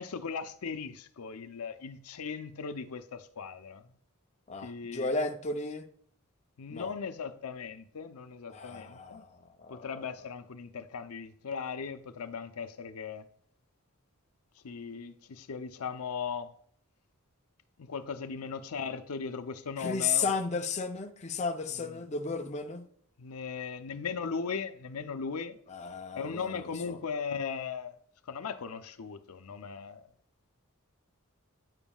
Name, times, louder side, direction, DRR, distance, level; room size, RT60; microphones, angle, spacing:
voice 1, 0.0-3.8 4.6-5.1 6.6-9.2 9.7-13.3 14.6-16.5 17.8-20.3 23.2-25.6 26.2-27.9 28.3-30.0, left 5 dB, 80° left, 0.6 m, -38 dB
voice 2, 4.5-5.9 6.7-6.9 8.5-9.9 19.8-22.8 25.7-27.0, left 4 dB, 30° left, 0.6 m, -34 dB
9.7 x 7.1 x 2.3 m
head